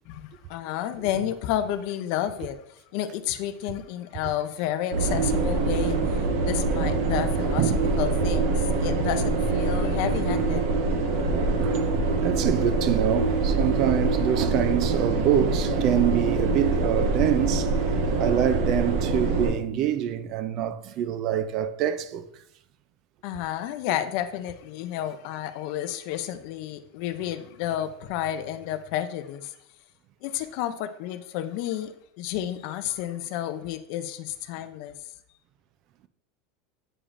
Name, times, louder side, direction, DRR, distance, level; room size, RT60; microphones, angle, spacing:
voice 1, 0.1-2.6 2.9-7.6 8.0-10.6 23.2-29.5 30.2-34.9, left 11 dB, 45° left, 0.4 m, -31 dB
sound 1, 4.9-19.5, right 3 dB, 60° right, 1.0 m, -24 dB
voice 2, 7.6-7.9 11.6-11.9 12.2-22.4, right 10 dB, 35° right, 0.3 m, -26 dB
8.6 x 4.9 x 2.5 m
supercardioid pair, 175°, 0 cm